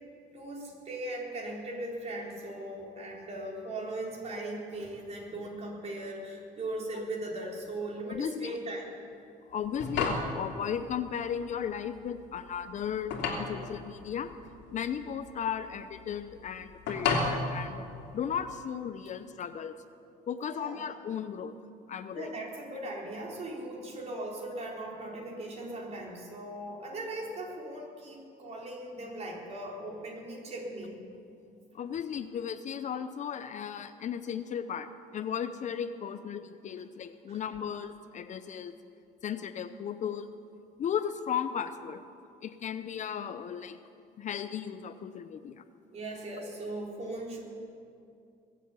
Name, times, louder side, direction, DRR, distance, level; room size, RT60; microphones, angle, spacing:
voice 1, 0.3-8.9 20.5-20.8 22.1-30.9 37.3-37.4 45.9-47.4, right 1 dB, 40° right, -2 dB, 4.0 m, -39 dB
voice 2, 8.1-8.5 9.5-14.3 14.7-17.9 18.1-19.8 20.3-21.5 21.9-22.3 31.7-38.8 39.2-40.3 40.8-42.0 42.4-43.8 44.2-45.6, left 8 dB, 45° left, 11 dB, 0.6 m, -35 dB
sound 1, 9.5-18.5, left 4 dB, 80° left, 2.7 m, -34 dB
21.0 x 7.6 x 8.4 m, 2.5 s
cardioid pair, 110°, 17 cm